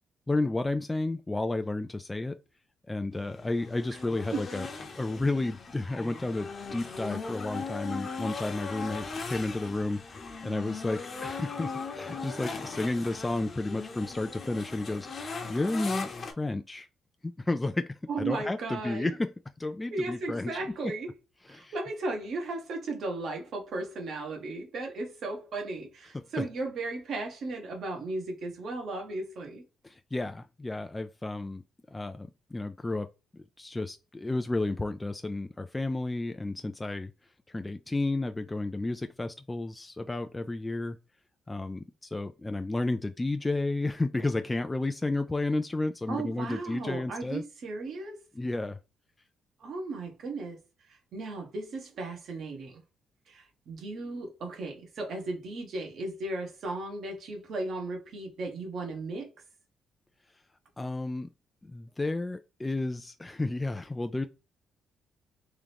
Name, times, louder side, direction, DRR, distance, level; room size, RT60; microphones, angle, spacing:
voice 1, 0.3-2.4 2.9-4.7 5.0-10.0 10.4-15.1 15.5-16.9 17.2-19.3 19.6-20.6 21.5-21.7 26.1-26.5 29.8-31.6 31.9-33.1 33.6-37.1 37.5-41.0 41.5-47.4 48.4-48.8 60.8-61.3 61.7-64.3, left 2 dB, 15° left, 0.3 m, -32 dB
sound 1, 3.1-16.3, left 4 dB, 45° left, 1.0 m, -39 dB
voice 2, 18.1-19.1 19.9-21.1 21.5-29.6 46.1-48.2 49.6-50.6 50.9-52.8 53.3-59.3, right 2 dB, 65° right, 1.4 m, -36 dB
3.7 x 2.9 x 3.4 m
cardioid pair, 90°, 0 cm